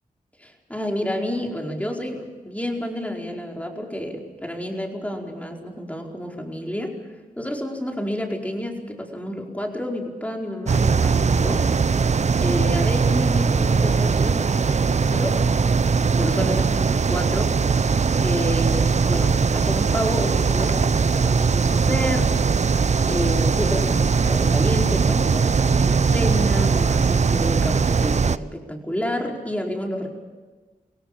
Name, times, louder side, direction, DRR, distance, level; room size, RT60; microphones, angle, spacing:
voice 1, 0.4-7.0 7.4-11.7 12.4-15.4 16.1-17.6 18.2-22.3 23.0-30.1, equal, 10° left, 1 dB, 4.9 m, -29 dB
sound 1, 10.7-28.4, right 5 dB, 50° right, 0.7 m, -20 dB
24.0 x 17.0 x 8.6 m, 1.3 s
cardioid pair, 40°, 15 cm